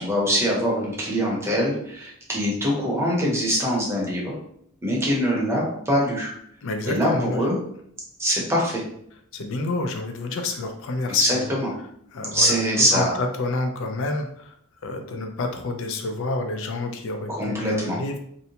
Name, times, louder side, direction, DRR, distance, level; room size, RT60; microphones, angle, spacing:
voice 1, 0.0-4.3 4.8-6.3 6.9-7.6 8.2-8.8 11.2-11.7 12.3-13.1 17.3-18.0, equal, 10° right, -4 dB, 0.7 m, -23 dB
voice 2, 6.6-7.5 9.3-11.5 12.1-12.6 12.9-14.5 14.8-18.2, left 3 dB, 60° left, 5 dB, 0.4 m, -28 dB
2.6 x 2.1 x 2.8 m, 0.69 s
head